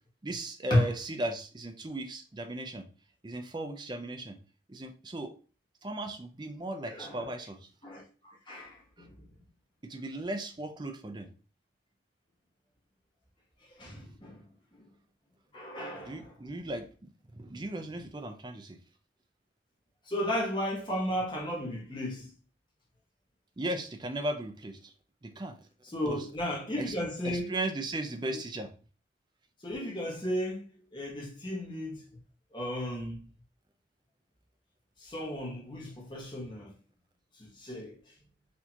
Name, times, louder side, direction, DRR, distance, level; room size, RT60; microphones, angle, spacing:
voice 1, 0.2-2.9 3.2-4.4 4.7-5.3 5.8-7.7 9.0-9.1 9.8-11.3 16.1-18.8 23.6-24.9 25.2-25.6 26.1-26.2 26.8-26.9 27.2-28.7, right 1 dB, 25° right, 0.5 m, -37 dB
voice 2, 6.9-7.3 7.8-9.3 13.7-14.4 14.7-14.8 15.5-16.3 20.1-22.3 25.9-27.5 29.6-32.1 32.5-33.3 35.0-36.7 37.4-38.1, left 1 dB, 25° left, 1.1 m, -34 dB
4.3 x 2.7 x 2.8 m
head